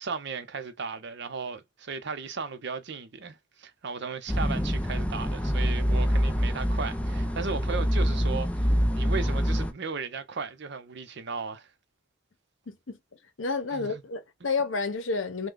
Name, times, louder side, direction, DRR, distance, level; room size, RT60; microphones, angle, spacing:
voice 1, 0.0-11.7 13.7-14.0, right 5 dB, 65° right, 0.7 m, -36 dB
sound 1, 4.3-9.7, equal, 5° left, 0.4 m, -26 dB
voice 2, 12.7-13.0 13.4-15.5, left 4 dB, 80° left, 0.8 m, -30 dB
3.2 x 2.2 x 3.8 m
head